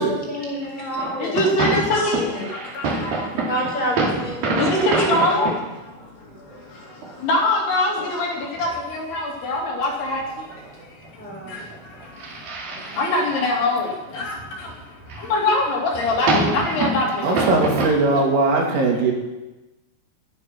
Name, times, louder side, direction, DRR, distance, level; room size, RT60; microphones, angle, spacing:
voice 1, 0.0-1.4 3.5-5.5 11.2-11.6, equal, 10° left, -4 dB, 5.4 m, -29 dB
sound 1, 1.0-5.7 6.0-6.1 7.0-7.4 8.0-8.8 9.1-9.2 9.5-9.6 9.8-9.9 10.1-10.7 11.0-13.8 14.2-14.7 15.0-17.9, right 3 dB, 50° right, 4.2 m, -26 dB
voice 2, 1.2-2.4 2.8-2.9 4.6-5.5 7.2-8.3 8.6-10.2 11.5-11.6 13.0-13.9 14.1-14.3 15.3-17.1 17.3-17.8 18.1-18.2, left 2 dB, 60° left, -1 dB, 4.5 m, -22 dB
voice 3, 17.2-19.1, right 3 dB, 75° right, -1 dB, 5.4 m, -20 dB
20.0 x 11.0 x 6.0 m, 1.1 s
omnidirectional pair, 5.7 m